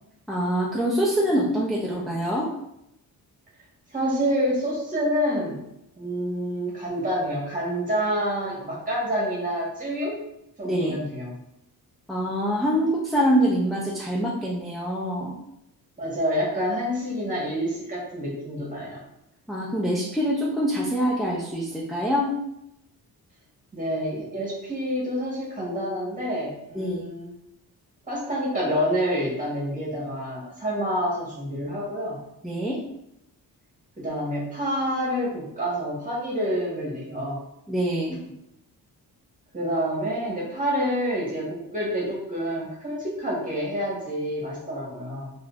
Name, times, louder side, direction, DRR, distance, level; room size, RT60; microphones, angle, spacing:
voice 1, 0.3-2.5 10.6-11.0 12.1-15.3 19.5-22.3 26.7-27.1 32.4-32.8 37.7-38.2, equal, ahead, -5 dB, 0.4 m, -25 dB
voice 2, 3.9-5.6 6.0-10.2 10.6-11.3 16.0-19.0 23.7-27.3 28.1-32.2 34.0-37.4 39.5-45.3, equal, 20° right, -5 dB, 1.3 m, -28 dB
3.6 x 2.9 x 2.4 m, 0.81 s
wide cardioid pair, 135°, 38 cm